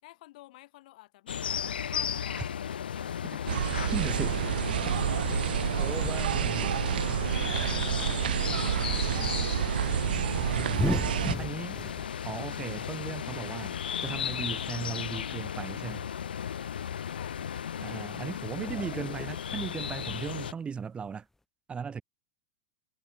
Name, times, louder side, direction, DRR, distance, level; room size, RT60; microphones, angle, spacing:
voice 1, 0.0-3.1 4.0-4.5 5.9-8.3 8.7-9.8 17.1-17.5, left 18 dB, 60° left, 7.8 m, -52 dB
sound 1, 1.3-20.5, left 8 dB, 75° left, 2.7 m, -35 dB
sound 2, 3.5-11.3, right 11 dB, 70° right, 0.3 m, -29 dB
voice 2, 3.9-4.4 4.8-4.9 5.8-6.9 10.4-11.8 12.2-13.8 14.0-16.1 16.5-16.7 17.8-21.3 21.7-22.0, right 6 dB, 20° right, 2.6 m, -37 dB
sound 3, 10.5-12.1 12.5-13.1 14.2-14.3 14.6-14.7 15.1-15.2 15.6-16.8 18.0-18.1 18.4-19.5 20.0-20.5, left 2 dB, 5° left, 5.4 m, -38 dB
figure-of-eight pair, 90°, 5 cm